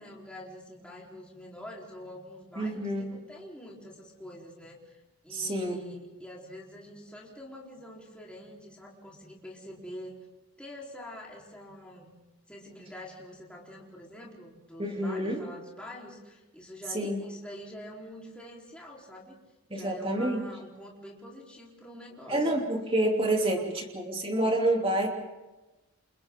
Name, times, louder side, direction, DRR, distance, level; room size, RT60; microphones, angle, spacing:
voice 1, 0.0-10.2 10.6-12.2 12.5-19.4 19.7-22.5, left 1 dB, 5° left, -4 dB, 4.0 m, -46 dB
voice 2, 2.6-3.1 5.3-5.8 14.8-15.4 16.9-17.2 19.7-20.4 22.3-25.1, right 1 dB, 25° right, 1 dB, 3.0 m, -28 dB
29.5 x 28.0 x 3.8 m, 1.1 s
head